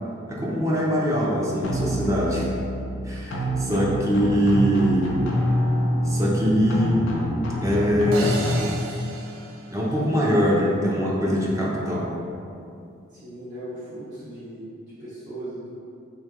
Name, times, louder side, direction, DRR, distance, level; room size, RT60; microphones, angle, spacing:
voice 1, 0.3-2.5 3.0-5.4 6.0-7.0 7.6-8.5 9.7-12.1, equal, 15° right, -4 dB, 0.5 m, -22 dB
sound 1, 1.6-8.6, equal, 75° left, 0.5 m, -26 dB
sound 2, 8.1-10.5, right 2 dB, 85° right, 0.4 m, -34 dB
voice 2, 13.1-14.7 15.0-15.7, right 1 dB, 45° right, -15 dB, 1.0 m, -37 dB
3.0 x 2.8 x 3.6 m, 2.5 s
head